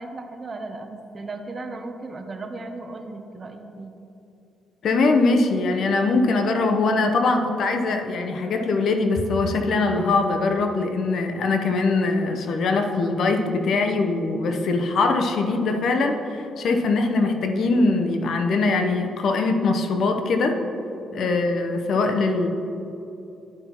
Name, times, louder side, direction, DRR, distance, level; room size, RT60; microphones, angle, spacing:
voice 1, 0.0-3.9 21.1-21.4, right 2 dB, 35° right, 6 dB, 0.7 m, -36 dB
voice 2, 4.8-20.6 21.1-22.5, left 3 dB, 65° left, 5 dB, 0.8 m, -22 dB
11.5 x 5.4 x 3.0 m, 2.9 s
cardioid pair, 90°, 0 cm